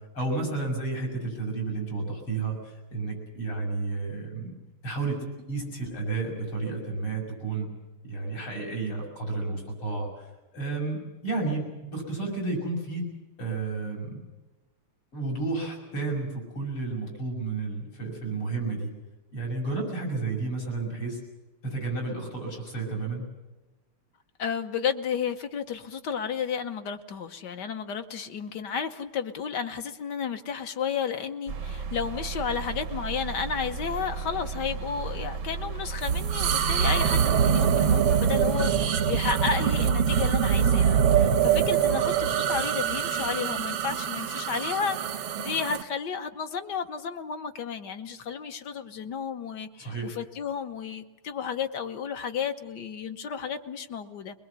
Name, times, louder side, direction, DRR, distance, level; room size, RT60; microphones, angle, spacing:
voice 1, 0.1-4.5 4.8-7.7 8.0-10.3 10.5-13.0 13.4-14.2 15.1-18.9 19.3-21.2 21.6-23.2 49.8-50.1, right 3 dB, 80° left, 0 dB, 7.3 m, -31 dB
voice 2, 24.4-54.4, left 6 dB, 60° left, 8 dB, 1.5 m, -32 dB
sound 1, 31.5-38.9, right 5 dB, 55° right, 0.9 m, -35 dB
sound 2, 36.0-45.8, right 8 dB, 85° right, 1.9 m, -24 dB
22.5 x 20.5 x 8.2 m, 1.1 s
omnidirectional pair, 2.4 m